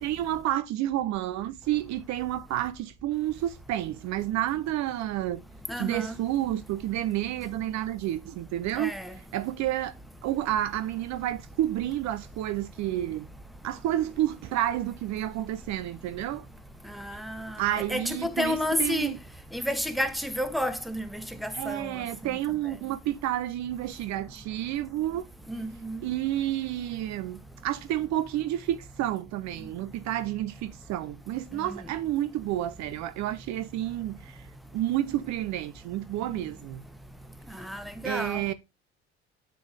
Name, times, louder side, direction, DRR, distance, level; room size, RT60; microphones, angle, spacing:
voice 1, 0.0-5.4 5.8-8.9 9.3-9.9 10.2-13.3 13.6-16.5 17.6-19.2 21.5-25.3 26.0-34.5 34.7-36.8 38.0-38.5, right 13 dB, 55° right, 0.6 m, -30 dB
voice 2, 5.7-6.2 8.7-9.2 16.9-19.1 19.5-22.0 25.5-26.0 31.6-31.8 37.5-38.4, left 1 dB, ahead, 1.3 m, -31 dB
6.9 x 6.8 x 3.3 m
hypercardioid pair, 60°, 33 cm